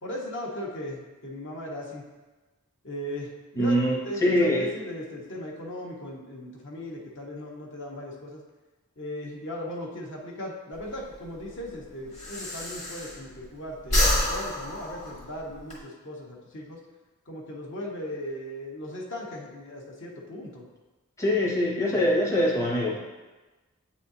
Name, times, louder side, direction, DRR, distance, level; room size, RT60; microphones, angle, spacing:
voice 1, 0.0-2.0 2.8-3.8 4.1-8.4 9.0-16.8 17.3-20.7, left 1 dB, 55° left, -2 dB, 1.1 m, -37 dB
voice 2, 3.6-4.7 21.2-23.0, left 1 dB, 15° left, -4 dB, 0.7 m, -23 dB
Breathing, 10.7-13.5 13.8-15.8, left 1 dB, 35° left, 1.3 m, -28 dB
8.4 x 4.2 x 2.7 m, 1.2 s
head